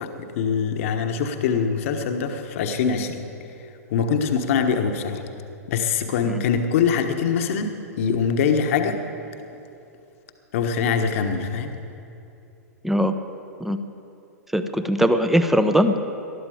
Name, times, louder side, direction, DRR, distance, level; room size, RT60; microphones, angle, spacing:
voice 1, 0.0-3.2 3.9-5.2 5.7-9.0 10.5-11.7, left 6 dB, 50° left, 6 dB, 1.2 m, -23 dB
voice 2, 14.5-16.0, equal, 5° right, 9 dB, 0.8 m, -20 dB
20.0 x 12.0 x 5.0 m, 2.8 s
figure-of-eight pair, 105°, 9 cm